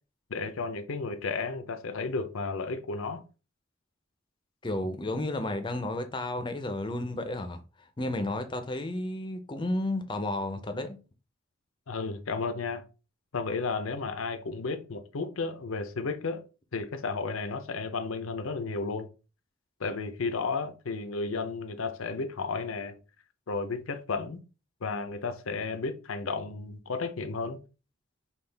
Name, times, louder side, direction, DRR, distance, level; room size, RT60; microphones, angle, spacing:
voice 1, 0.3-3.2 11.9-12.8 13.3-16.4 16.7-19.1 19.8-23.0 23.5-24.4 24.8-27.6, left 4 dB, 80° left, 0.6 m, -33 dB
voice 2, 4.6-7.6 8.0-11.0, left 1 dB, 25° left, 0.5 m, -32 dB
5.6 x 2.4 x 3.4 m
head